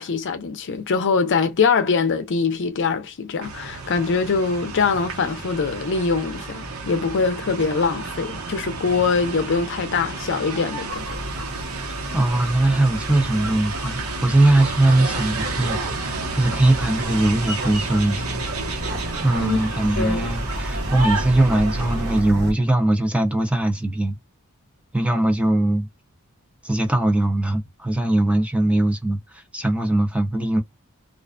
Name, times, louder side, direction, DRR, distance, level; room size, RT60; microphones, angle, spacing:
voice 1, 0.0-11.1 19.4-19.6 20.0-20.3, left 5 dB, 60° left, 0.5 m, -23 dB
sound 1, 3.4-22.2, right 3 dB, 85° right, 1.0 m, -31 dB
sound 2, 10.9-22.5, equal, 50° right, 0.8 m, -33 dB
voice 2, 12.1-18.4 19.2-24.2 24.9-25.9 26.6-30.6, right 1 dB, 5° right, 0.6 m, -20 dB
2.4 x 2.1 x 2.4 m
head